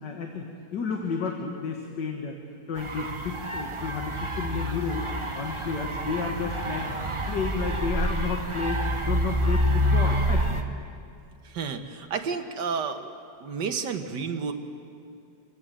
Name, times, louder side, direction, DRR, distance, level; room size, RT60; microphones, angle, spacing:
voice 1, 0.0-0.5 0.7-2.3 2.7-5.1 5.4-6.9 7.3-10.6, left 5 dB, 85° left, 2 dB, 2.2 m, -31 dB
sound 1, 2.8-10.6, equal, 20° right, 1.1 m, -27 dB
voice 2, 11.4-13.1 13.4-14.5, right 5 dB, 85° right, 6 dB, 1.9 m, -31 dB
26.0 x 16.5 x 7.7 m, 2.4 s
omnidirectional pair, 1.8 m